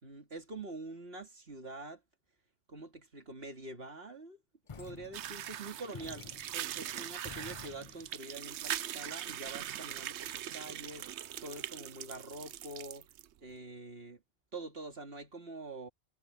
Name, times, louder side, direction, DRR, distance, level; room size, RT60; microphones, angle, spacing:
voice 1, 0.0-2.0 2.7-4.4 4.8-11.1 11.4-13.1 13.4-14.2 14.5-15.9, right 2 dB, 60° right, 2.7 m, -45 dB
sound 1, 4.7-8.2, left 6 dB, 35° left, 0.6 m, -51 dB
sound 2, 5.1-13.3, right 11 dB, 80° right, 0.9 m, -41 dB
omnidirectional pair, 1.1 m